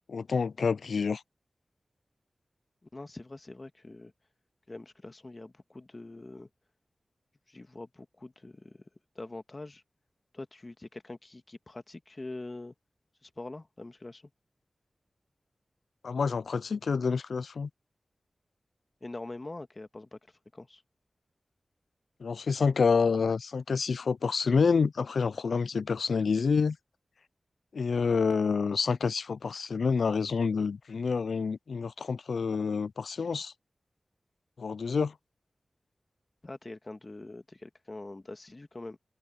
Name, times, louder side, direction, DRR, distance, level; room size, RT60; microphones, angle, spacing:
voice 1, 0.1-1.2 16.0-17.7 22.2-26.8 27.7-33.5 34.6-35.1, left 5 dB, 90° left, 0.3 m, -28 dB
voice 2, 2.8-4.1 4.7-6.5 7.5-8.8 9.2-9.8 10.3-12.7 13.2-14.2 19.0-20.2 20.5-20.8 36.4-39.0, left 2 dB, 40° left, 1.7 m, -44 dB
open air
cardioid pair, 45°, 0 cm